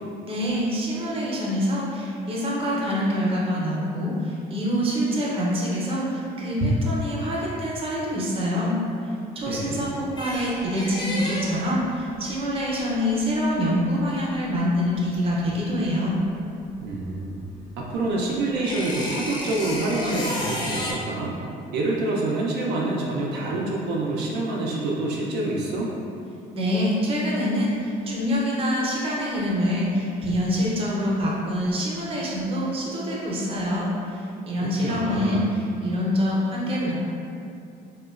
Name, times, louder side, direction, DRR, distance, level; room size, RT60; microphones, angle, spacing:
voice 1, 0.2-8.8 9.4-16.2 26.5-36.9, equal, 35° right, -5 dB, 0.6 m, -25 dB
voice 2, 9.5-9.8 16.8-17.4 17.8-21.3 21.7-25.9 34.6-35.4, right 2 dB, 80° right, -4 dB, 0.4 m, -27 dB
sound 1, 9.8-16.0 16.3-20.9, left 1 dB, 25° left, 0.4 m, -33 dB
2.9 x 2.2 x 2.3 m, 2.6 s
cardioid pair, 110°, 17 cm